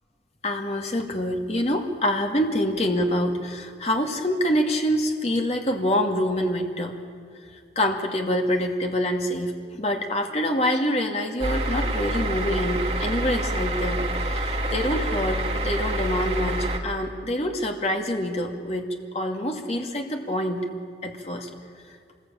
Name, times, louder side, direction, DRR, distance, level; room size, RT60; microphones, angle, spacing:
voice 1, 0.4-6.9 7.8-20.6 21.0-21.5, equal, 35° left, 3 dB, 2.2 m, -26 dB
sound 1, 11.4-16.8, right 1 dB, 35° right, 2.0 m, -27 dB
26.5 x 20.5 x 8.9 m, 2.1 s
head